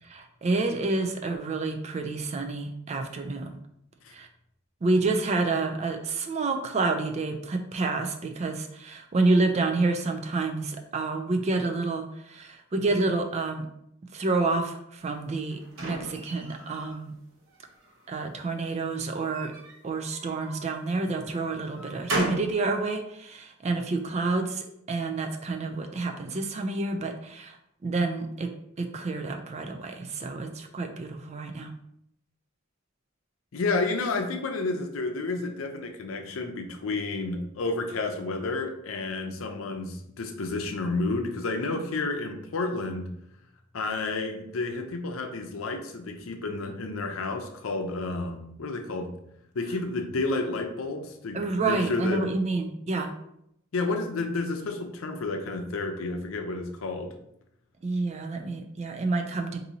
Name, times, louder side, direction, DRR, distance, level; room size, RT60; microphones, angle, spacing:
voice 1, 0.0-3.6 4.1-4.3 4.8-13.7 14.1-17.1 18.1-19.5 19.8-28.5 28.8-31.7 51.3-53.1 57.8-59.6, right 3 dB, 35° right, 4 dB, 0.4 m, -29 dB
sound 1, 15.1-17.0 17.5-18.2 19.2-20.7 21.2-22.6, right 1 dB, 75° right, 0.8 m, -35 dB
voice 2, 33.5-43.1 43.7-49.1 49.5-52.3 53.7-57.1, left 3 dB, 85° left, 4 dB, 0.6 m, -31 dB
3.9 x 2.7 x 2.7 m, 0.77 s
head